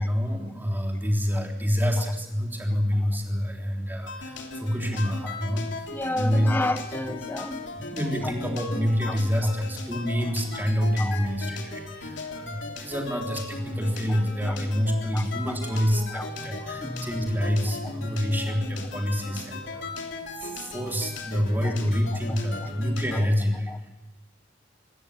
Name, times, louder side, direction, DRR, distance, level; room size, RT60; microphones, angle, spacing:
voice 1, 0.0-5.9 6.1-6.5 7.7-19.8 20.4-23.9, equal, 10° right, 3.4 m, -27 dB
sound 1, 4.1-23.3, left 3 dB, 65° left, 3.2 m, -37 dB
voice 2, 5.9-7.7 9.1-9.2 11.0-11.2 14.5-14.6 15.1-15.5 16.1-16.3 16.6-17.1 23.1-23.2 23.7-23.8, left 1 dB, 10° left, 1.1 m, -31 dB
25.5 x 13.5 x 8.6 m
head